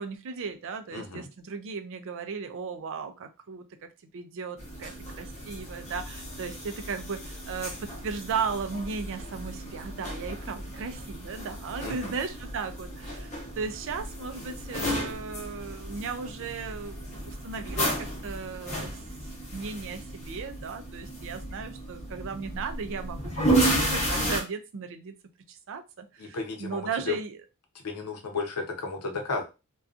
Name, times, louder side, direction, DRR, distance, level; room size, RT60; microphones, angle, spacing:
voice 1, 0.0-19.0 19.5-23.3 23.6-25.1 25.5-27.4, right 5 dB, 60° right, 8 dB, 0.4 m, -36 dB
voice 2, 0.9-1.3 11.8-12.1 26.2-27.1 27.8-29.4, left 4 dB, 90° left, 3 dB, 0.7 m, -33 dB
sound 1, 4.6-24.4, right 1 dB, 30° left, 0.7 m, -33 dB
2.6 x 2.3 x 2.4 m, 0.28 s
head